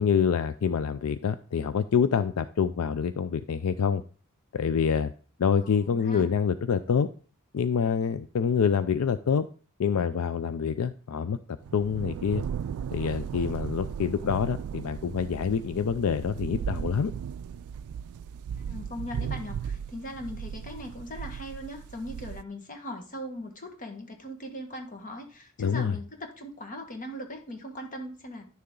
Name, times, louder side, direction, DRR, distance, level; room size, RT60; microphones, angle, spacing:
voice 1, 0.0-4.0 4.5-5.1 5.4-7.1 7.5-9.5 9.8-11.4 11.7-12.4 12.9-17.1 25.6-25.9, left 6 dB, 70° left, 13 dB, 0.4 m, -26 dB
voice 2, 5.6-6.3 18.6-28.5, left 1 dB, 35° left, 5 dB, 1.5 m, -39 dB
sound 1, 11.6-22.4, right 7 dB, 65° right, 0.3 m, -36 dB
10.5 x 6.7 x 3.8 m, 0.42 s
head